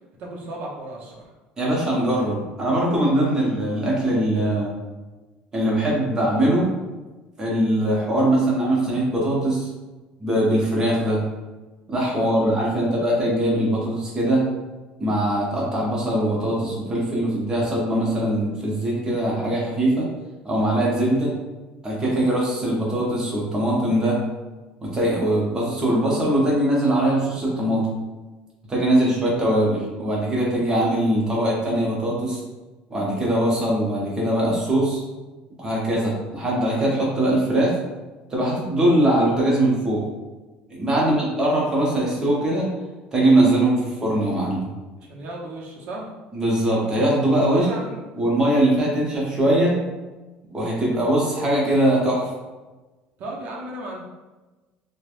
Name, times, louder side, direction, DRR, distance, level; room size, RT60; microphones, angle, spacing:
voice 1, 0.2-1.3 12.1-13.0 28.9-29.1 40.9-41.3 45.0-46.1 47.5-48.0 53.2-54.0, right 1 dB, 55° right, -3 dB, 0.7 m, -35 dB
voice 2, 1.6-4.7 5.5-6.7 7.4-9.7 10.2-11.2 11.9-14.4 15.0-20.1 20.4-21.3 21.8-24.2 24.8-27.9 28.7-32.4 32.9-35.0 35.6-37.7 38.3-40.0 40.7-42.7 43.1-44.7 46.3-47.7 48.2-49.7 50.5-52.3, right 1 dB, 20° right, -5 dB, 0.9 m, -21 dB
3.2 x 2.2 x 2.5 m, 1.2 s
cardioid pair, 145°, 3 cm